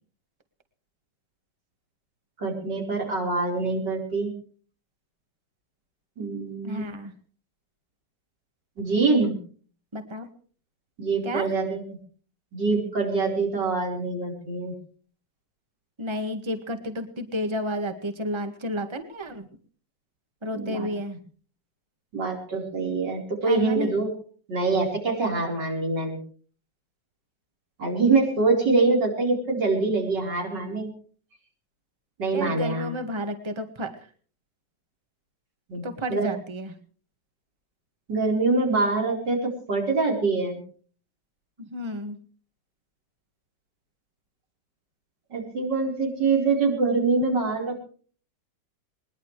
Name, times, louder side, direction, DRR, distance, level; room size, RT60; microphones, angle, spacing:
voice 1, 2.4-4.3 6.2-6.8 8.8-9.4 11.0-11.8 12.5-14.7 20.5-20.9 22.1-24.1 24.5-26.2 27.8-30.9 32.2-32.9 35.7-35.8 36.1-36.3 38.1-40.6 45.3-47.8, right 3 dB, 90° right, 0 dB, 5.2 m, -24 dB
voice 2, 6.6-7.1 9.9-10.3 11.2-11.5 16.0-19.5 20.4-21.2 23.4-23.9 32.3-33.9 35.8-36.7 41.6-42.2, equal, 15° right, 7 dB, 1.8 m, -31 dB
21.0 x 21.0 x 3.3 m, 0.43 s
omnidirectional pair, 1.8 m